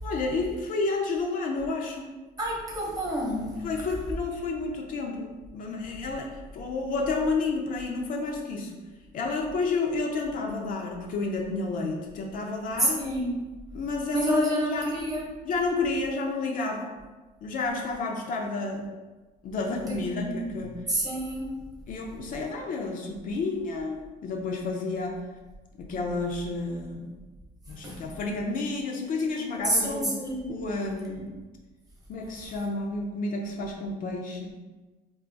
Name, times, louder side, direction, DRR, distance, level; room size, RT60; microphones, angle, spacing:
voice 1, 0.0-2.1 3.6-8.7 9.1-13.0 13.7-14.9 15.4-16.9 17.4-18.9 19.4-20.8 21.9-25.2 25.8-27.1 27.7-30.2 30.5-31.3 32.1-34.5, left 3 dB, 55° left, 1 dB, 0.5 m, -30 dB
voice 2, 2.4-3.6 12.8-13.3 14.1-15.2 19.8-21.6 27.7-28.0 29.7-30.4, right 1 dB, 20° right, -3 dB, 0.9 m, -29 dB
2.4 x 2.3 x 3.8 m, 1.2 s
cardioid pair, 110°, 17 cm